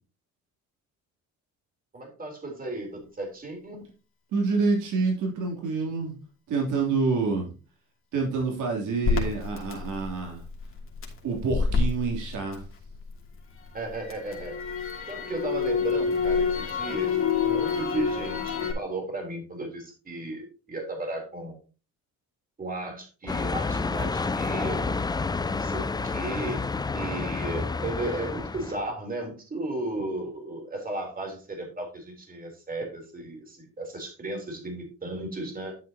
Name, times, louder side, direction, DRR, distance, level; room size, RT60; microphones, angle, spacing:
voice 1, 1.9-3.8 13.7-14.6 15.1-21.6 22.6-25.0 25.5-26.6 26.9-35.8, right 2 dB, 30° right, 2 dB, 3.6 m, -35 dB
voice 2, 4.3-6.2 6.5-7.5 8.1-10.4 11.2-12.7, right 4 dB, 80° right, 0 dB, 3.3 m, -27 dB
Crackle, 9.0-13.2 13.6-18.7, left 5 dB, 45° left, 2.7 m, -28 dB
sound 1, 23.3-28.9, left 4 dB, 15° left, 0.4 m, -29 dB
11.0 x 7.3 x 2.9 m, 0.33 s
cardioid pair, 90°, 30 cm